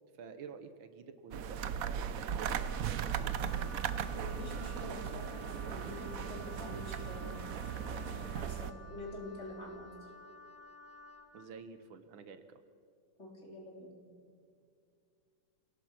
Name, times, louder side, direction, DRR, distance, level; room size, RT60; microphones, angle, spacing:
voice 1, 0.2-3.5 11.3-12.6, right 5 dB, 75° right, 10 dB, 1.8 m, -50 dB
sound 1, 1.3-8.7, right 8 dB, 60° right, 0.9 m, -37 dB
Wind instrument woodwind instrument, 2.4-11.5, left 3 dB, 10° right, 1.3 m, -53 dB
voice 2, 4.1-9.9 13.2-13.9, left 1 dB, 35° left, -1 dB, 3.9 m, -47 dB
27.0 x 17.5 x 6.0 m, 2.4 s
omnidirectional pair, 2.2 m